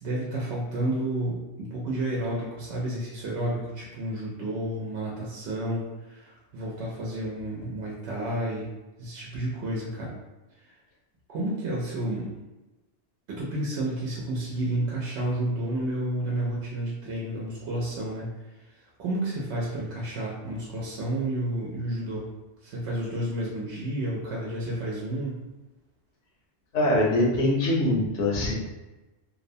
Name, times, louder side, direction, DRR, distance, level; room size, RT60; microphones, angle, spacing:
voice 1, 0.0-8.7 9.0-10.1 10.6-10.7 11.3-12.3 13.3-18.3 19.0-22.3 22.6-25.4, right 1 dB, 75° right, -4 dB, 0.9 m, -31 dB
voice 2, 26.7-28.5, left 1 dB, 80° left, -3 dB, 1.0 m, -23 dB
2.7 x 2.0 x 2.6 m, 1.1 s
omnidirectional pair, 1.2 m